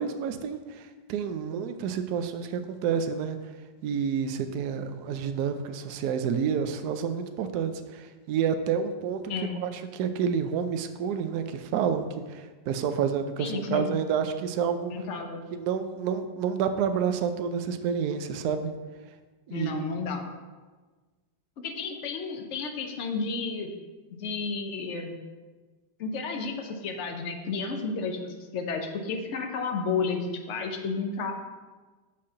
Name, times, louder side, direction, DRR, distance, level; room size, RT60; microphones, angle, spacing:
voice 1, 0.0-3.4 3.8-9.2 9.6-14.9 15.5-18.7 19.5-20.0, right 7 dB, 70° right, 8 dB, 1.0 m, -29 dB
voice 2, 9.3-9.6 13.4-13.9 14.9-15.4 19.5-20.2 21.6-23.7 24.2-25.2 26.0-31.3, left 4 dB, 60° left, 4 dB, 0.8 m, -32 dB
5.7 x 4.2 x 6.3 m, 1.3 s
omnidirectional pair, 2.0 m